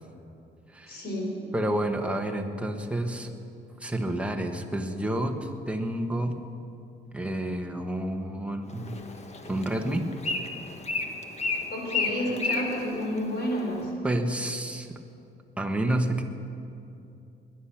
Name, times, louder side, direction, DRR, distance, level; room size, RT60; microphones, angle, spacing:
voice 1, 0.9-1.4 11.7-13.9, equal, 55° left, 0 dB, 4.9 m, -30 dB
voice 2, 1.5-3.3 3.8-6.4 7.1-8.9 9.5-10.1 14.0-15.0 15.6-16.2, right 1 dB, 5° right, 3 dB, 1.5 m, -29 dB
Bird, 8.7-13.8, left 3 dB, 35° left, 1.5 m, -33 dB
21.5 x 10.5 x 6.0 m, 2.7 s
cardioid pair, 90°, 20 cm